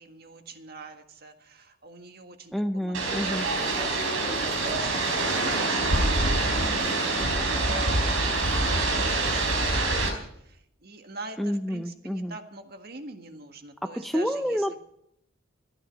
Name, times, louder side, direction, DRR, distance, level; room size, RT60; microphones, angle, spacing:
voice 1, 0.0-10.0 10.8-14.6, right 3 dB, 50° right, 6 dB, 1.6 m, -44 dB
voice 2, 2.5-3.5 11.4-12.4 13.8-14.8, equal, ahead, 8 dB, 0.5 m, -29 dB
sound 1, 2.9-10.1, right 2 dB, 85° right, 4.4 m, -25 dB
16.0 x 12.5 x 5.3 m, 0.75 s
head